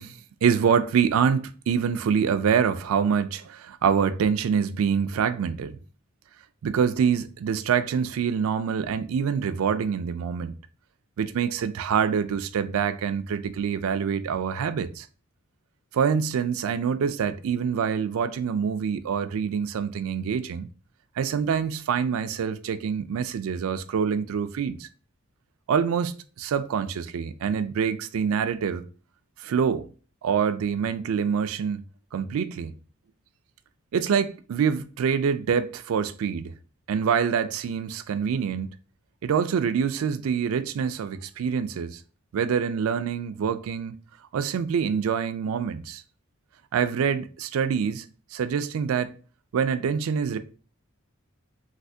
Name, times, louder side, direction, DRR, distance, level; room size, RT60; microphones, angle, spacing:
voice 1, 0.0-5.8 6.6-10.6 11.2-15.1 15.9-20.7 21.2-24.9 25.7-28.8 29.4-29.9 30.2-31.8 32.1-32.7 33.9-36.5 36.9-38.7 39.2-42.0 42.3-44.0 44.3-46.0 46.7-48.1 48.3-49.1 49.5-50.4, right 7 dB, 75° right, 0.3 m, -25 dB
3.3 x 2.7 x 2.6 m
head